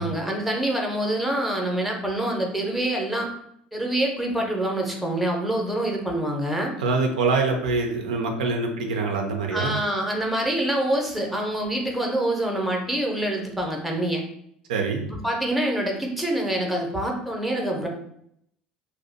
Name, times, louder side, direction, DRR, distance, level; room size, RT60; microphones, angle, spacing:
voice 1, 0.0-3.3 3.7-6.7 9.5-14.2 15.1-17.9, right 1 dB, ahead, 0 dB, 0.6 m, -26 dB
voice 2, 6.8-9.8 14.7-15.1, right 4 dB, 70° right, 3 dB, 0.4 m, -25 dB
2.6 x 2.0 x 2.6 m, 0.71 s
figure-of-eight pair, 65°, 5 cm